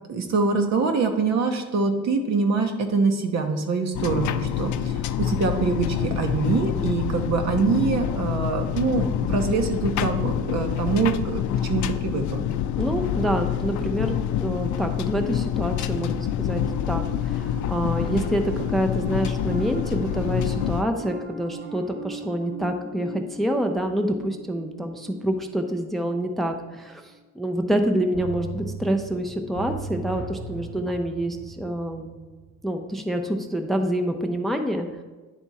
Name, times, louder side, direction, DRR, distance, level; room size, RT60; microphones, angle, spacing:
voice 1, 0.1-12.5, right 4 dB, 60° right, 5 dB, 1.0 m, -24 dB
sound 1, 3.9-20.8, left 10 dB, 75° left, 0.4 m, -27 dB
voice 2, 12.8-27.0 27.3-32.1 32.6-34.9, right 1 dB, ahead, 4 dB, 0.6 m, -27 dB
Piano, 15.8-27.3, right 4 dB, 35° right, 0.9 m, -41 dB
sound 2, 28.1-32.8 33.1-33.2, right 4 dB, 85° right, 1.8 m, -37 dB
10.0 x 3.5 x 4.1 m, 1.3 s
cardioid pair, 90°, 30 cm